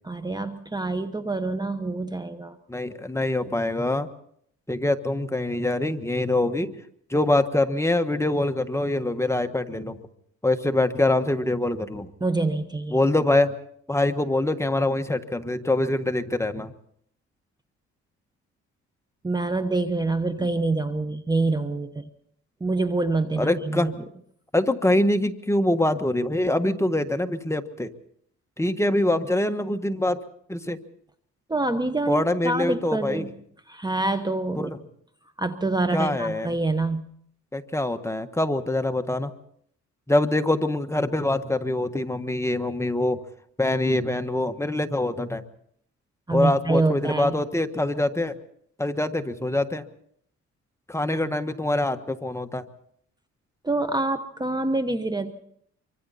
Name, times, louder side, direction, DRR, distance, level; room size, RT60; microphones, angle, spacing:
voice 1, 0.0-2.6 12.2-13.0 19.2-22.1 22.6-23.9 31.5-33.3 33.7-34.7 35.4-37.0 46.3-47.4 53.6-55.3, right 2 dB, 15° right, 10 dB, 1.1 m, -26 dB
voice 2, 2.7-4.1 4.7-6.8 7.1-10.0 10.4-12.1 12.9-13.5 13.9-16.7 23.4-24.0 24.5-27.9 28.6-30.2 30.5-30.8 32.1-33.3 34.6-34.8 35.9-36.6 37.5-39.3 40.1-43.2 43.6-45.4 46.3-48.3 48.8-49.8 50.9-52.6, left 1 dB, 10° left, 8 dB, 1.4 m, -24 dB
25.0 x 24.5 x 4.2 m, 0.66 s
cardioid pair, 90°, 30 cm